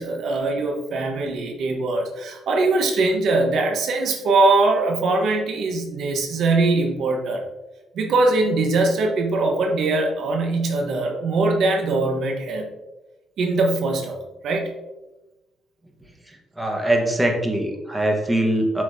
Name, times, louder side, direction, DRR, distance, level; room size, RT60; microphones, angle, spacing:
voice 1, 0.0-7.4 7.9-12.7 13.4-14.7, right 3 dB, 70° right, 2 dB, 1.2 m, -21 dB
voice 2, 16.3-18.8, right 1 dB, 10° right, 1 dB, 1.3 m, -22 dB
7.7 x 5.6 x 2.8 m, 1.0 s
cardioid pair, 90°, 0 cm